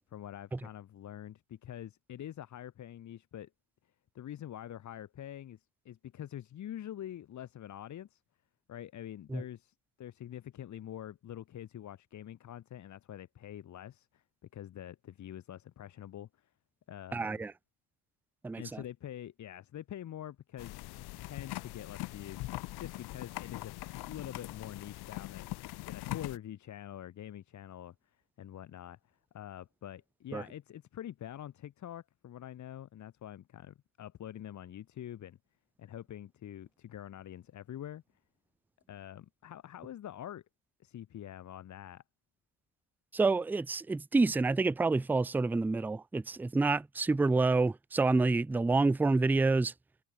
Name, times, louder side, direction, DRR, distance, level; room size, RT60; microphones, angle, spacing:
voice 1, 0.1-3.5 4.1-8.2 8.7-14.2 14.5-16.5 16.9-17.3 18.6-23.7 24.0-25.5 25.8-27.9 28.4-35.4 35.8-38.0 38.9-40.4 40.8-42.0, left 11 dB, 40° left, 1.2 m, -45 dB
voice 2, 17.1-17.5 18.4-18.8 30.3-30.4 43.1-49.7, right 3 dB, 5° right, 0.4 m, -28 dB
sound 1, 20.6-26.4, left 19 dB, 65° left, 0.9 m, -42 dB
cardioid pair, 105°, 42 cm